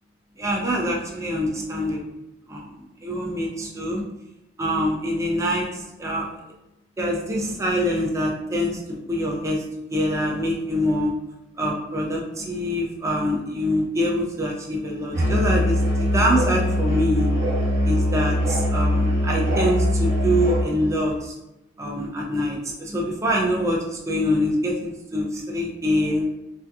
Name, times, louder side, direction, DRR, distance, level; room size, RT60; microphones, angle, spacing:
voice 1, 0.4-2.0 2.5-2.7 3.0-4.0 4.6-6.3 7.0-8.8 9.1-9.6 9.9-11.1 11.6-17.3 17.8-21.3 21.8-26.3, equal, 15° right, -2 dB, 0.3 m, -25 dB
Musical instrument, 15.1-20.7, equal, 45° right, 1.1 m, -22 dB
2.6 x 2.2 x 2.2 m, 0.92 s
head